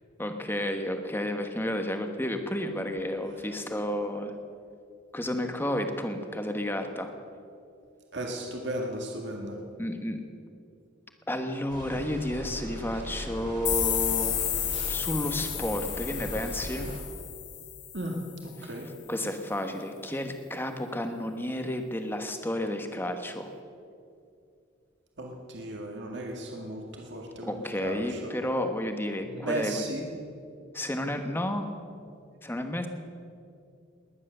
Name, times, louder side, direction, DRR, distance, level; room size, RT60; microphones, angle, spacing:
voice 1, 0.2-4.3 5.1-7.1 9.8-10.2 11.3-14.5 14.9-16.9 18.6-18.7 19.1-23.5 27.4-29.9 30.7-31.7 32.4-32.9, left 1 dB, 10° left, 6 dB, 1.2 m, -31 dB
voice 2, 8.1-9.6 14.7-15.0 17.9-18.2 18.6-18.9 25.2-28.3 29.2-30.0, right 1 dB, 60° right, 0 dB, 2.0 m, -35 dB
sound 1, 11.7-17.0, equal, 40° right, 2.5 m, -38 dB
sound 2, 13.6-18.3, left 11 dB, 60° left, 1.6 m, -32 dB
20.0 x 10.5 x 6.7 m, 2.4 s
head